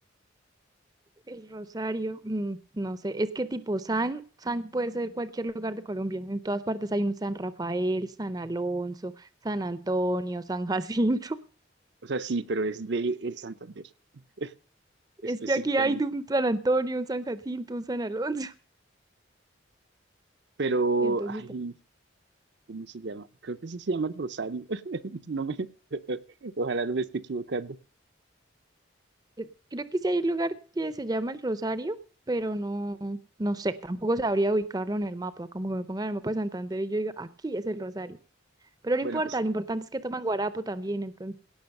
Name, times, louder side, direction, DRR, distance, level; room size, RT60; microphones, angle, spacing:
voice 1, 1.3-11.4 15.2-18.5 21.0-21.4 29.4-32.0 32.3-38.2 38.8-41.4, right 2 dB, 20° right, 14 dB, 0.5 m, -30 dB
voice 2, 12.0-13.8 14.4-14.5 15.2-16.0 20.6-21.8 22.7-27.8 39.0-39.3, right 3 dB, 60° right, 11 dB, 0.6 m, -31 dB
17.5 x 6.1 x 6.5 m, 0.41 s
head